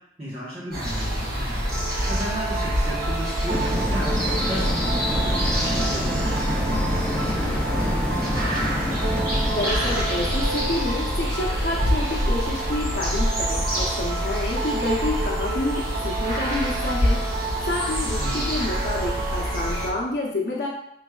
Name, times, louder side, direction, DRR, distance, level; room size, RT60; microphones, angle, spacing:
voice 1, 0.2-1.6 2.1-4.1 4.4-6.8 7.1-9.0 18.1-18.5, equal, 35° right, -8 dB, 1.0 m, -35 dB
sound 1, 0.7-19.9, equal, 55° right, 1.5 m, -26 dB
sound 2, 1.7-20.0, right 4 dB, 80° right, 0.4 m, -33 dB
sound 3, 3.5-14.2 14.6-14.7, left 1 dB, 10° left, 0.4 m, -29 dB
voice 2, 9.4-20.7, left 2 dB, 70° left, -3 dB, 0.8 m, -29 dB
5.9 x 3.3 x 2.3 m, 0.75 s
head